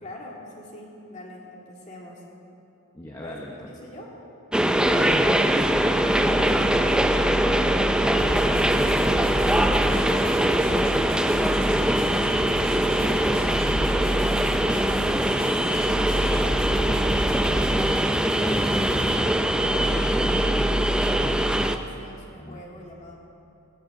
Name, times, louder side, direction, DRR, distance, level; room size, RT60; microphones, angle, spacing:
voice 1, 0.0-2.2 3.2-4.2 7.8-9.1 9.5-11.7 12.8-17.6 21.0-23.1, left 1 dB, 30° left, -2 dB, 2.2 m, -44 dB
voice 2, 2.9-3.5 4.8-5.5 6.2-6.9 18.4-20.8 22.3-22.6, left 1 dB, 15° left, 0 dB, 0.8 m, -35 dB
sound 1, 4.5-21.8, right 1 dB, 5° right, 0.4 m, -22 dB
sound 2, 8.2-19.2, right 1 dB, 40° right, 3.7 m, -36 dB
17.5 x 16.5 x 3.8 m, 2.7 s
head